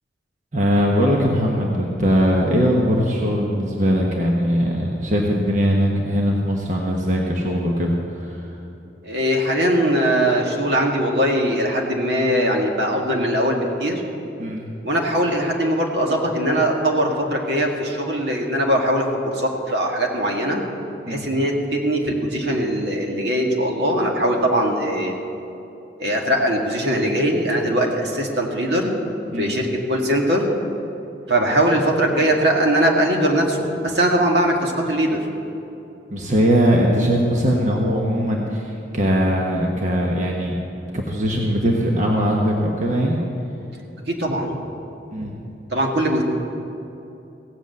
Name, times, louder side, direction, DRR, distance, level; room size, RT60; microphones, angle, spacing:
voice 1, 0.5-8.4 14.4-14.6 21.1-21.2 29.3-29.5 36.1-40.6 40.9-43.2 45.1-45.3, equal, 45° right, -1 dB, 1.3 m, -20 dB
voice 2, 9.0-14.0 14.8-19.1 19.3-20.7 21.1-25.1 26.0-29.0 29.4-30.4 31.3-35.2 44.1-44.5 45.7-46.2, right 1 dB, 70° right, 0 dB, 1.9 m, -21 dB
16.5 x 8.1 x 7.9 m, 2.8 s
head